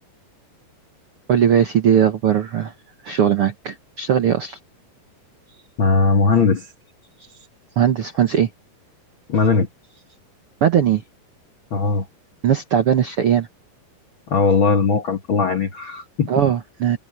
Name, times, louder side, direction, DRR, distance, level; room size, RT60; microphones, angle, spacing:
voice 1, 1.3-2.7 3.0-4.6 7.8-8.5 10.6-11.0 12.4-13.5 16.3-17.0, right 9 dB, 90° right, 1.2 m, -19 dB
voice 2, 5.8-6.7 9.3-9.7 11.7-12.0 14.3-16.3, left 4 dB, 60° left, 1.3 m, -18 dB
open air
omnidirectional pair, 4.6 m